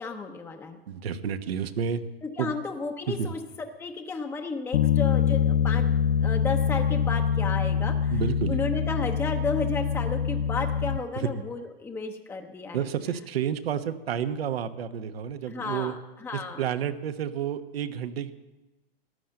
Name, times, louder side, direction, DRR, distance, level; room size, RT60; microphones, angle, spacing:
voice 1, 0.0-0.8 2.2-5.8 6.2-8.2 8.5-12.8 15.5-16.6, left 4 dB, 10° left, 4 dB, 0.8 m, -33 dB
voice 2, 0.9-2.0 2.4-2.5 3.1-3.3 8.1-8.6 12.7-15.9 16.6-18.3, right 8 dB, 80° right, 8 dB, 1.2 m, -30 dB
Bass guitar, 4.7-11.0, left 7 dB, 75° left, 0.7 m, -25 dB
14.5 x 10.5 x 7.7 m, 1.1 s
hypercardioid pair, 140°, 30 cm